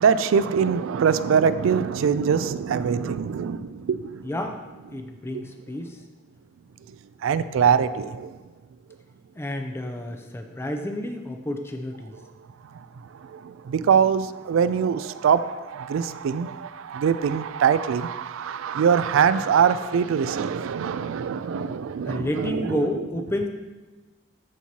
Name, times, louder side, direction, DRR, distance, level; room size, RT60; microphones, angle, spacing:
voice 1, 0.0-4.3 5.3-5.4 6.9-8.4 12.6-23.1, right 7 dB, 85° right, 14 dB, 0.3 m, -23 dB
voice 2, 4.2-4.6 4.9-6.0 9.4-12.2 22.1-23.5, left 1 dB, 10° left, 4 dB, 0.4 m, -30 dB
13.0 x 4.6 x 2.8 m, 1.2 s
head